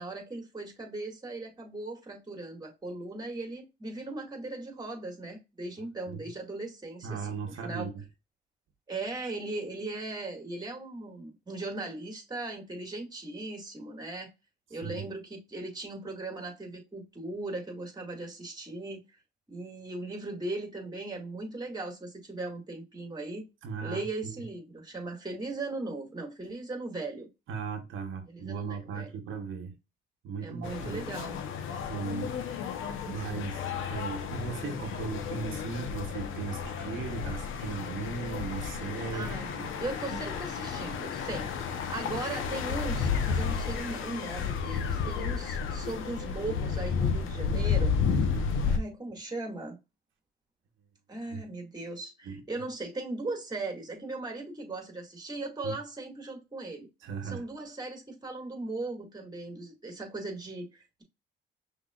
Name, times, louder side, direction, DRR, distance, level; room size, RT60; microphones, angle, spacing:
voice 1, 0.0-7.9 8.9-14.3 14.7-19.2 19.5-23.5 23.8-27.3 28.3-29.2 30.4-31.4 39.1-39.5 39.8-47.9 48.7-49.8 51.1-56.9 57.2-61.0, right 2 dB, 20° right, 2.0 m, -38 dB
voice 2, 5.8-6.3 7.0-8.0 14.8-15.1 23.6-24.4 27.5-29.8 30.2-31.0 31.7-32.3 33.1-39.7 40.1-40.2 48.3-48.5 51.3-51.4 52.2-52.4 55.6-55.7 57.0-57.5, right 5 dB, 80° right, 1.0 m, -37 dB
sound 1, 30.6-48.8, left 6 dB, 85° left, 0.8 m, -32 dB
5.8 x 3.3 x 2.4 m
cardioid pair, 90°, 20 cm